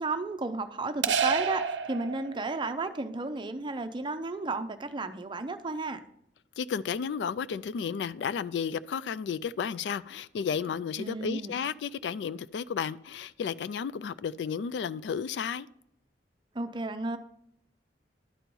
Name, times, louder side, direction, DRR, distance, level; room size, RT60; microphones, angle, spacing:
voice 1, 0.0-6.0 11.0-11.5 16.5-17.2, right 3 dB, 25° right, 0.5 m, -33 dB
sound 1, 1.0-2.7, right 6 dB, 75° right, 0.6 m, -29 dB
voice 2, 6.6-15.7, left 7 dB, 70° left, 0.3 m, -33 dB
11.0 x 4.5 x 5.3 m
head